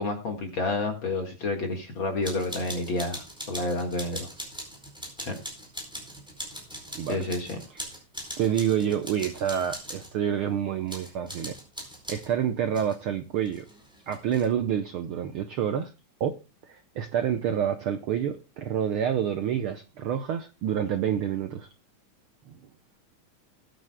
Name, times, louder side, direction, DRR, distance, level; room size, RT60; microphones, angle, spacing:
voice 1, 0.0-4.3 5.2-5.4 7.1-7.6, left 2 dB, 45° left, 2.2 m, -30 dB
sound 1, 2.2-10.1 10.9-12.3 12.7-13.0 13.4-14.4, equal, ahead, 4.0 m, -41 dB
voice 2, 8.4-11.6 12.1-13.7 14.1-15.9 16.2-16.4 16.6-21.7, right 9 dB, 85° right, 1.1 m, -28 dB
20.0 x 9.2 x 2.2 m
omnidirectional pair, 3.5 m